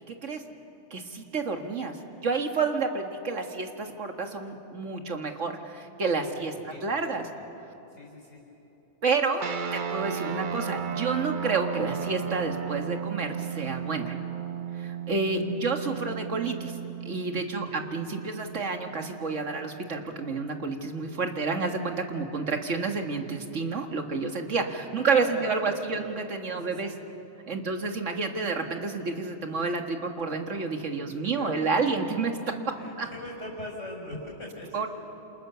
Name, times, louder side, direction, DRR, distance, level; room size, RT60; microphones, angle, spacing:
voice 1, 0.1-0.4 0.9-2.0 2.2-7.2 9.0-9.4 9.7-14.2 14.8-16.8 17.1-26.9 27.5-32.5 33.0-33.1 34.7-34.9, right 4 dB, 80° right, 4 dB, 2.1 m, -29 dB
voice 2, 6.3-7.5 7.9-8.4 15.1-15.6 16.0-16.1 17.6-17.9 25.1-26.0 26.5-26.9 31.1-31.9 32.8-34.9, left 1 dB, 75° left, -3 dB, 5.5 m, -42 dB
sound 1, 9.4-20.1, right 8 dB, 45° right, 0.9 m, -35 dB
28.5 x 28.0 x 7.0 m, 2.9 s
omnidirectional pair, 1.2 m